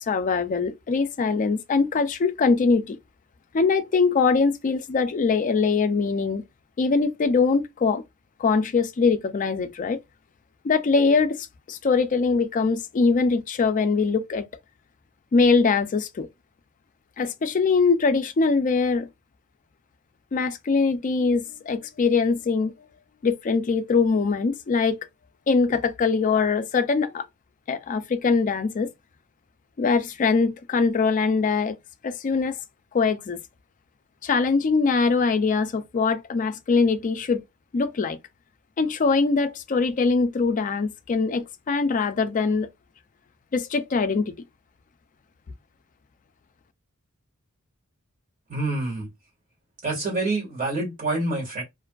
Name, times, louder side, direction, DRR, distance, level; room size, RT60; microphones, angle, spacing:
voice 1, 0.0-3.0 3.5-6.4 6.8-8.0 8.4-10.0 10.6-14.5 15.3-16.3 17.2-19.1 20.3-22.7 23.2-25.0 25.5-27.2 27.7-28.9 29.8-31.8 32.0-32.6 32.9-33.4 34.2-37.4 37.7-38.2 38.8-42.7 43.5-44.3, left 4 dB, 35° left, 0.3 m, -22 dB
voice 2, 48.5-49.1 49.8-51.6, right 2 dB, 40° right, 1.5 m, -27 dB
2.5 x 2.4 x 2.2 m
head